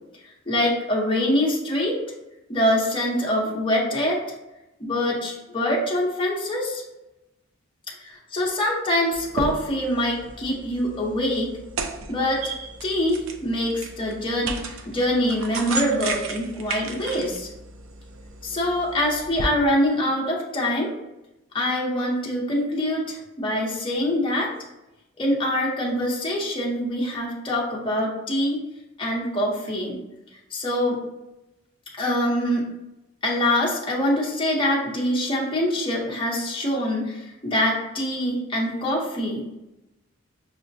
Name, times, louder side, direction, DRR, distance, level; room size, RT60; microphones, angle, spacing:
voice 1, 0.5-1.9 2.5-4.2 4.8-6.8 8.0-11.5 12.1-12.5 12.8-17.5 18.4-20.9 21.5-24.5 25.2-28.6 29.0-30.0 30.5-31.0 32.0-32.6 33.2-39.5, left 1 dB, 25° left, -3 dB, 0.7 m, -24 dB
sound 1, 9.1-19.5, right 3 dB, 70° right, 0.4 m, -34 dB
5.6 x 2.1 x 2.6 m, 0.96 s
head